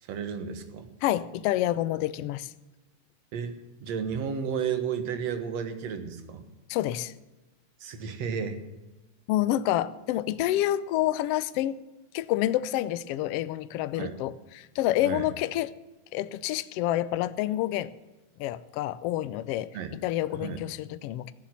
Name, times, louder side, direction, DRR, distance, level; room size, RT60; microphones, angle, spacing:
voice 1, 0.0-0.9 3.3-6.5 7.8-8.6 14.0-14.2 15.0-15.3 19.7-19.9 20.3-20.6, right 7 dB, 65° right, 9 dB, 2.4 m, -33 dB
voice 2, 1.0-2.5 6.7-7.1 9.3-11.8 12.1-15.7 16.1-17.9 18.4-19.8 20.0-21.3, left 14 dB, 80° left, 15 dB, 1.4 m, -28 dB
15.5 x 7.2 x 9.2 m, 1.1 s
omnidirectional pair, 3.3 m